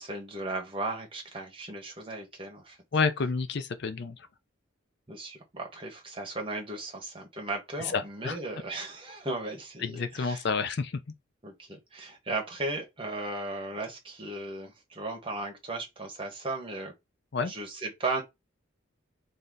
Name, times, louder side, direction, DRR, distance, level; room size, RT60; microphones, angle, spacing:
voice 1, 0.0-2.8 5.1-10.4 11.4-16.9 17.4-18.2, right 2 dB, 25° right, 1.3 m, -36 dB
voice 2, 2.9-4.2 7.9-8.4 9.8-11.0 17.3-17.5, left 4 dB, 55° left, 0.5 m, -29 dB
3.2 x 2.7 x 3.8 m
head